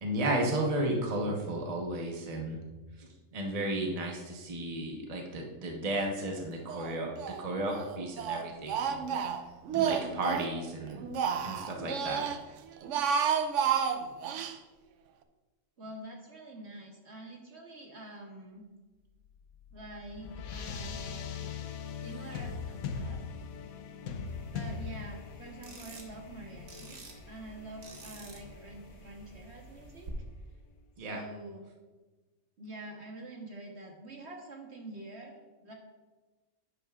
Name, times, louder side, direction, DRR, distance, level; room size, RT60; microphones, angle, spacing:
voice 1, 0.0-2.6 3.0-7.1 7.4-9.2 9.7-11.1 11.4-12.2 31.0-31.2, right 1 dB, 30° right, 0 dB, 1.1 m, -33 dB
Speech, 6.7-7.4 7.7-10.5 10.9-12.4 12.8-14.6, right 7 dB, 65° right, 0.9 m, -31 dB
voice 2, 15.8-18.7 19.7-21.5 22.0-23.2 24.5-27.0 27.3-30.1 31.0-31.7 32.6-35.7, right 2 dB, 50° right, 1 dB, 1.4 m, -46 dB
sound 1, 19.2-30.0, left 6 dB, 80° left, 1.1 m, -42 dB
sound 2, 24.3-30.1, right 3 dB, 85° right, 1.8 m, -51 dB
11.0 x 9.1 x 2.4 m, 1.2 s
omnidirectional pair, 1.5 m